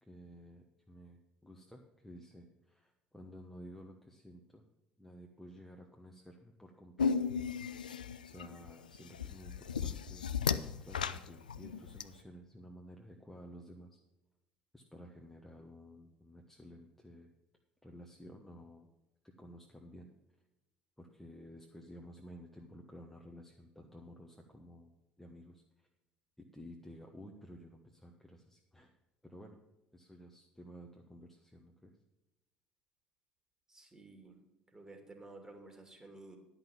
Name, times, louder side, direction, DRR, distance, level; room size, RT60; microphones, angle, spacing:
voice 1, 0.0-4.6 5.0-7.2 8.2-10.2 10.8-14.0 14.7-17.3 17.8-18.9 19.2-20.1 21.0-24.9 25.2-25.9 26.4-28.9 29.2-29.6 29.9-31.9, equal, 5° left, 1 dB, 1.2 m, -53 dB
sound 1, 7.0-12.0, left 6 dB, 80° left, 0.4 m, -35 dB
voice 2, 33.7-34.3 34.7-36.4, right 2 dB, 15° right, 4 dB, 2.5 m, -53 dB
11.0 x 5.9 x 7.3 m, 0.96 s
figure-of-eight pair, 55°, 4 cm